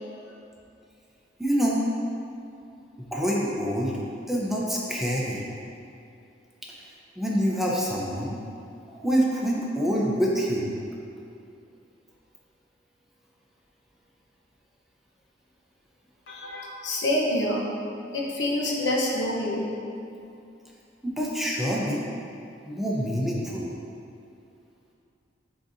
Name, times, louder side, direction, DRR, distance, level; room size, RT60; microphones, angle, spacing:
voice 1, 1.4-1.9 3.0-4.0 4.3-5.5 6.6-6.7 7.2-8.4 8.9-10.8 21.0-22.1 22.6-23.7, equal, ahead, -5 dB, 0.7 m, -26 dB
voice 2, 16.3-17.7 18.1-19.7, left 1 dB, 75° left, -3 dB, 0.9 m, -27 dB
9.5 x 4.0 x 2.7 m, 2.5 s
head